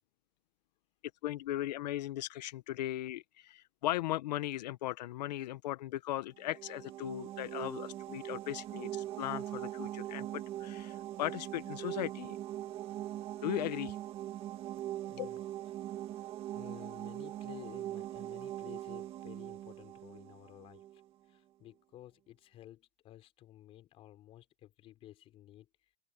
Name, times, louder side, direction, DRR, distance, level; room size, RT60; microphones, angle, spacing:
voice 1, 1.2-12.4 13.4-14.0 15.2-15.3, left 14 dB, 80° left, 1.0 m, -38 dB
sound 1, 6.4-21.0, right 13 dB, 25° right, 1.9 m, -41 dB
voice 2, 15.1-15.4 16.5-20.8 21.3-25.7, left 13 dB, 25° left, 4.6 m, -53 dB
open air
supercardioid pair, 170°, 21 cm